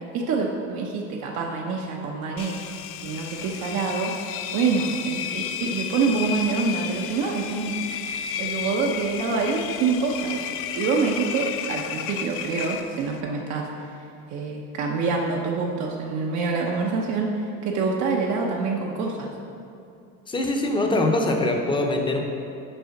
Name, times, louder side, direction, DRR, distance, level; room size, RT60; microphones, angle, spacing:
voice 1, 0.0-2.6 3.0-4.1 4.5-7.8 8.4-10.4 10.8-13.7 14.3-19.3, right 4 dB, 65° right, -1 dB, 0.8 m, -26 dB
Engine, 2.4-13.2, left 9 dB, 50° left, 0.4 m, -33 dB
voice 2, 20.3-22.2, left 2 dB, 15° left, 2 dB, 0.7 m, -23 dB
6.8 x 4.9 x 5.8 m, 2.6 s
cardioid pair, 140°, 30 cm